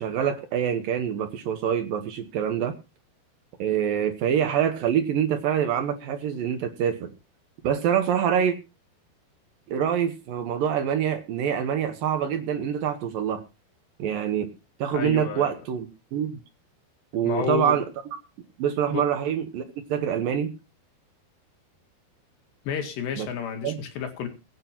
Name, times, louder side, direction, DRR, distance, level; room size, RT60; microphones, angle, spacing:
voice 1, 0.0-2.7 3.6-7.1 7.6-8.6 9.7-13.4 14.0-14.5 14.8-16.4 17.1-17.8 18.6-19.6 19.9-20.5 23.2-23.3 23.6-23.8, right 9 dB, 70° right, 2.4 m, -25 dB
voice 2, 14.9-15.6 17.2-17.8 18.9-19.0 22.7-24.3, left 7 dB, 80° left, 4.3 m, -30 dB
22.5 x 9.0 x 2.9 m
omnidirectional pair, 4.9 m